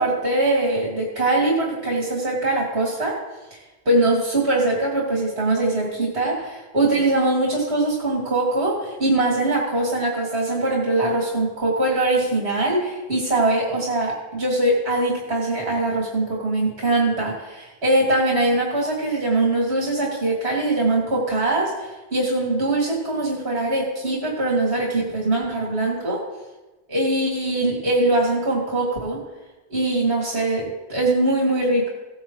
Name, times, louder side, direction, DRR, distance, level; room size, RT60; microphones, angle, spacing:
voice 1, 0.0-3.2 3.9-26.2 26.9-29.2 29.7-31.9, right 2 dB, 65° right, -3 dB, 2.5 m, -22 dB
16.5 x 9.4 x 3.1 m, 1.1 s
omnidirectional pair, 1.1 m